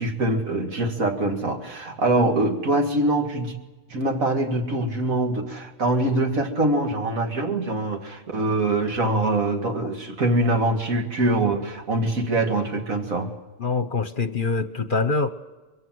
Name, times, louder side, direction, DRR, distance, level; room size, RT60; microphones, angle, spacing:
voice 1, 0.0-3.6 3.9-13.3, right 2 dB, 80° right, 4 dB, 2.7 m, -24 dB
voice 2, 13.6-15.3, left 4 dB, 45° left, 12 dB, 0.9 m, -24 dB
24.0 x 23.0 x 7.8 m, 1.2 s
omnidirectional pair, 1.4 m